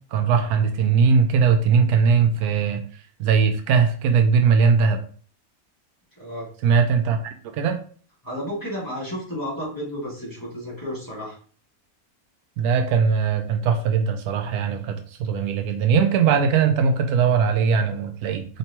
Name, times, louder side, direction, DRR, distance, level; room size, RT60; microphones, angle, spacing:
voice 1, 0.1-2.8 3.2-5.0 6.6-7.2 7.5-7.8 12.6-18.5, right 6 dB, 85° right, 7 dB, 1.1 m, -20 dB
voice 2, 6.2-6.5 8.2-11.4, equal, 15° left, -7 dB, 2.0 m, -32 dB
4.5 x 3.4 x 2.9 m, 0.43 s
omnidirectional pair, 1.6 m